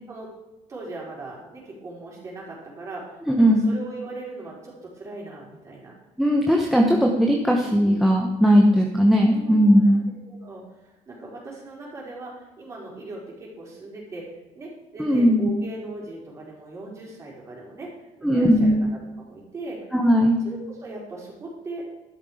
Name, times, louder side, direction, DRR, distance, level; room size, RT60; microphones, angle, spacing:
voice 1, 0.7-5.9 7.0-7.1 7.8-8.0 9.3-14.3 14.5-18.7 19.2-19.8 20.4-21.9, right 2 dB, 25° right, -3 dB, 4.4 m, -39 dB
voice 2, 3.3-3.6 6.2-10.0 15.0-15.5 18.2-18.8 19.9-20.4, equal, ahead, 1 dB, 1.0 m, -18 dB
12.5 x 11.0 x 4.9 m, 1.1 s
cardioid pair, 175°, 12 cm